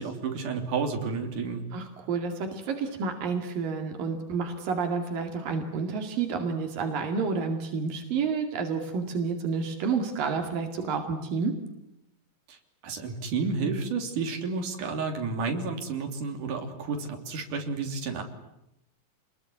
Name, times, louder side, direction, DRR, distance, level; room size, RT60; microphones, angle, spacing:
voice 1, 0.0-1.6 12.5-12.6 12.8-18.2, right 4 dB, 70° right, 4 dB, 4.7 m, -31 dB
voice 2, 1.7-11.6, right 5 dB, 85° right, 5 dB, 4.1 m, -30 dB
28.5 x 21.5 x 9.7 m, 0.85 s
omnidirectional pair, 3.8 m